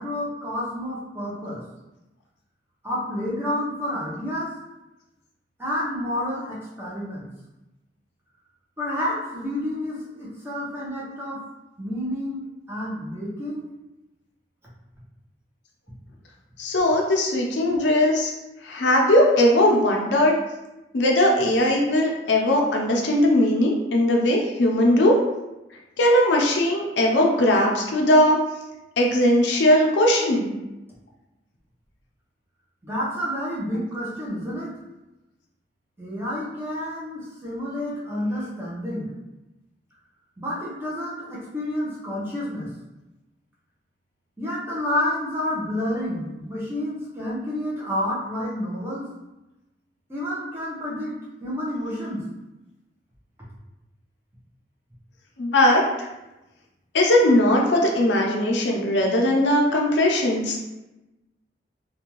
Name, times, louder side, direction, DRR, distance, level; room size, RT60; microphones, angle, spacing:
voice 1, 0.0-1.6 2.8-4.5 5.6-7.3 8.8-11.4 11.8-13.6 32.8-34.7 36.0-39.1 40.4-42.7 44.4-49.1 50.1-51.1 51.4-52.3, left 1 dB, 15° right, -6 dB, 0.6 m, -29 dB
voice 2, 16.6-18.3 18.6-20.3 20.9-25.2 26.0-28.4 29.0-30.5 55.4-56.1 56.9-60.6, left 1 dB, 85° left, 0 dB, 0.5 m, -19 dB
2.5 x 2.2 x 2.9 m, 0.99 s
head